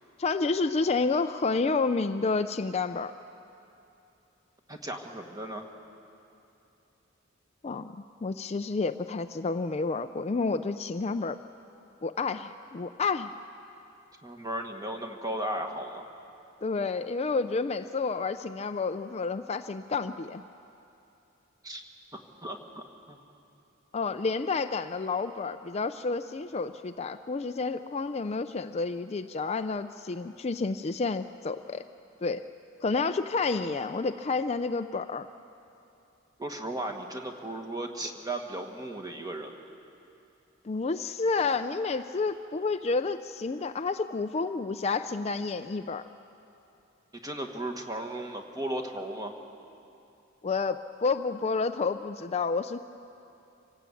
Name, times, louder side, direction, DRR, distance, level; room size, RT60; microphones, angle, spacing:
voice 1, 0.2-3.1 7.6-11.4 12.0-13.3 16.6-20.4 23.9-31.8 32.2-32.4 32.8-35.3 40.6-46.0 50.4-52.8, left 4 dB, 30° left, 9 dB, 0.4 m, -30 dB
voice 2, 4.7-5.7 14.2-16.1 21.6-21.8 22.1-23.2 36.4-39.5 47.1-49.3, right 1 dB, 20° right, 3 dB, 1.7 m, -36 dB
26.0 x 18.0 x 8.5 m, 2.8 s
head